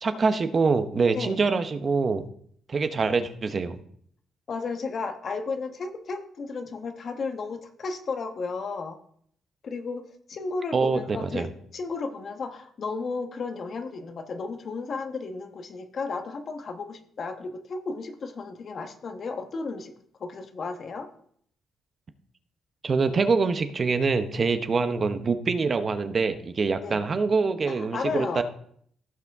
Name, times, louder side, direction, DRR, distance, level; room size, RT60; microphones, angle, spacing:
voice 1, 0.0-2.2 2.7-3.8 10.7-11.5 22.8-28.4, right 4 dB, 40° right, 9 dB, 0.9 m, -25 dB
voice 2, 1.1-1.5 4.5-9.0 9.6-19.9 20.2-21.1 26.8-27.0 27.7-28.4, left 4 dB, 50° left, 7 dB, 1.2 m, -33 dB
16.0 x 5.8 x 3.6 m, 0.64 s
cardioid pair, 90°, 0 cm